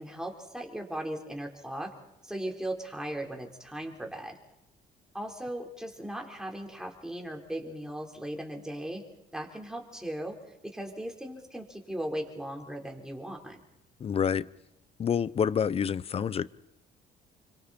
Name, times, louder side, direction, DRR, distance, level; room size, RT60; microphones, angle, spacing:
voice 1, 0.0-1.9 2.2-4.4 5.1-9.0 9.3-10.4 10.6-13.6, right 1 dB, 5° right, 1 dB, 4.4 m, -37 dB
voice 2, 14.0-14.5 15.0-16.5, left 7 dB, 35° left, 19 dB, 0.7 m, -27 dB
29.0 x 25.5 x 4.5 m, 0.84 s
cardioid pair, 110°, 17 cm